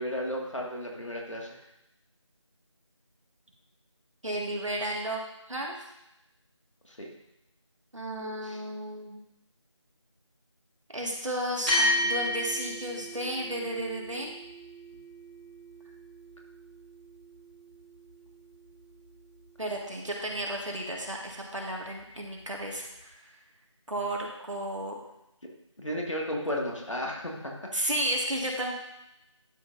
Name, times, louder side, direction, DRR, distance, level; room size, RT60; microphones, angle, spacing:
voice 1, 0.0-1.6 6.8-7.1 8.4-8.6 25.8-27.5, equal, 75° left, -1 dB, 2.0 m, -34 dB
voice 2, 4.2-5.2 5.5-5.7 7.9-9.2 10.9-14.3 19.6-23.1 23.9-25.0 27.7-28.7, right 1 dB, 75° right, -1 dB, 2.1 m, -33 dB
sound 1, 11.7-20.3, left 1 dB, 15° right, 2.9 m, -34 dB
11.5 x 5.7 x 2.7 m, 0.86 s
figure-of-eight pair, 170°, 16 cm